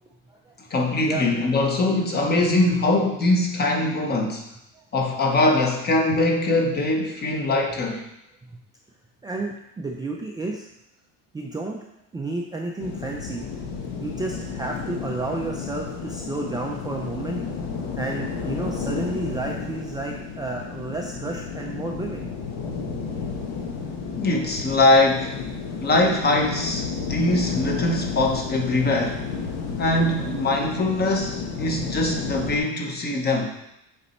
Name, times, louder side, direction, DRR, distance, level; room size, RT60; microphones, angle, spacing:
voice 1, 0.7-4.4 4.9-8.0 24.2-25.4 25.8-29.2 29.8-33.5, left 2 dB, 30° left, 2 dB, 1.1 m, -22 dB
voice 2, 9.2-10.7 11.3-11.8 12.1-13.5 14.0-17.4 18.0-22.2, right 2 dB, 10° right, -1 dB, 0.4 m, -31 dB
sound 1, 12.8-32.6, left 5 dB, 70° left, 1.3 m, -32 dB
7.0 x 4.2 x 4.3 m, 0.83 s
cardioid pair, 145°, 34 cm